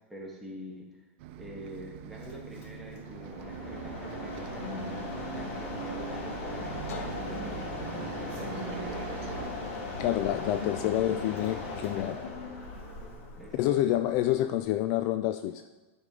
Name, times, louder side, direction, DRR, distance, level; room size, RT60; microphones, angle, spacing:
voice 1, 0.1-1.0 1.4-9.5 13.0-13.7, equal, ahead, -3 dB, 1.5 m, -46 dB
Bus, 1.2-9.5, right 13 dB, 55° right, 0.4 m, -42 dB
Mechanisms, 2.2-14.6, left 3 dB, 70° left, 1.8 m, -39 dB
Guitar, 3.4-12.8, left 6 dB, 90° left, 1.1 m, -46 dB
voice 2, 10.0-12.2 13.5-15.6, left 13 dB, 45° left, 9 dB, 0.3 m, -28 dB
9.7 x 5.3 x 3.8 m, 1.2 s
supercardioid pair, 140°, 7 cm